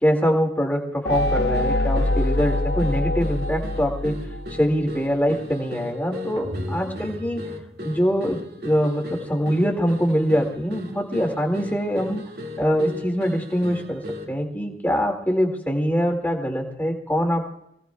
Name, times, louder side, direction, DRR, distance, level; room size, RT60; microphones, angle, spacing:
voice 1, 0.0-4.2 4.6-7.4 7.8-12.2 12.6-14.0 14.3-17.5, equal, 10° left, 2 dB, 2.1 m, -23 dB
sound 1, 1.1-4.8, left 1 dB, 80° left, 0.8 m, -24 dB
sound 2, 1.1-14.4, left 1 dB, 60° right, 2.1 m, -37 dB
sound 3, 6.4-8.5, equal, 80° right, 2.1 m, -36 dB
26.0 x 17.5 x 2.3 m, 0.78 s
head